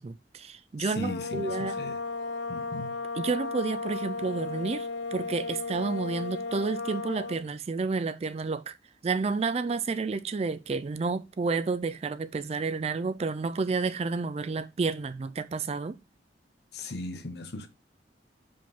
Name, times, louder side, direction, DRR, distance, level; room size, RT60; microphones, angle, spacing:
voice 1, 0.0-1.7 3.2-8.7 9.0-16.0, right 4 dB, 35° right, 0.4 m, -30 dB
voice 2, 0.8-2.0 2.5-2.9 16.7-17.7, left 2 dB, 65° left, 0.9 m, -37 dB
sound 1, 0.9-7.5, left 3 dB, 80° left, 0.5 m, -35 dB
5.1 x 3.7 x 5.6 m
head